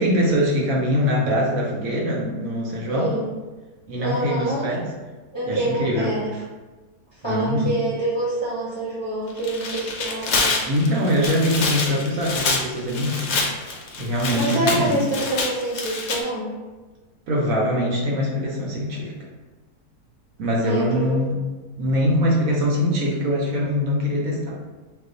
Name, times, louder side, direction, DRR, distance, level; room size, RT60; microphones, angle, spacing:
voice 1, 0.0-3.2 3.9-4.9 5.4-6.2 7.2-7.7 10.7-15.0 17.3-19.1 20.4-21.4 21.8-24.6, equal, 70° right, -3 dB, 1.1 m, -23 dB
voice 2, 2.9-3.3 4.0-4.8 5.3-6.3 7.2-10.5 14.3-16.5 20.6-21.2, right 1 dB, 30° left, -10 dB, 0.5 m, -26 dB
Tearing, 9.3-16.2, left 3 dB, 65° left, 0.7 m, -26 dB
2.5 x 2.3 x 3.7 m, 1.2 s
omnidirectional pair, 1.6 m